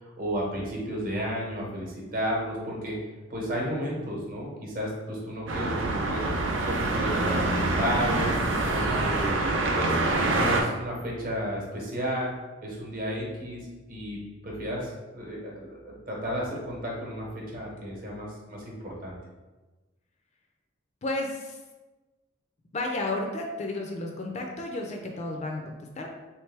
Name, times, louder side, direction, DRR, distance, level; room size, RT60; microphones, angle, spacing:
voice 1, 0.0-3.0 3.3-6.3 6.6-8.3 8.7-9.4 9.7-10.0 10.2-12.3 12.6-19.2, equal, 45° right, -3 dB, 0.9 m, -33 dB
sound 1, 5.5-10.6, right 2 dB, 65° right, 0.5 m, -25 dB
voice 2, 21.0-21.6 22.7-26.1, left 2 dB, 35° left, 2 dB, 0.4 m, -32 dB
3.2 x 3.1 x 3.3 m, 1.2 s
head